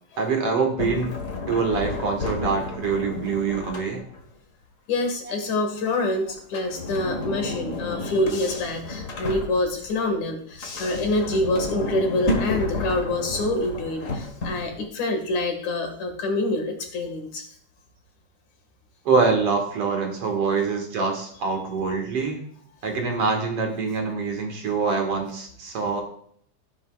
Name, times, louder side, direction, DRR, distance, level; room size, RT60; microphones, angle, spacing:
voice 1, 0.2-1.1 1.5-4.1 5.3-5.4 7.3-7.4 19.1-22.4 22.8-26.0, right 4 dB, 55° right, 2 dB, 2.5 m, -25 dB
Sliding door, 0.8-4.3 6.4-9.9 10.5-14.9, left 2 dB, 40° left, 1.1 m, -31 dB
voice 2, 4.9-17.4, left 2 dB, 75° left, 3 dB, 3.2 m, -26 dB
13.5 x 11.0 x 2.4 m, 0.63 s
omnidirectional pair, 3.4 m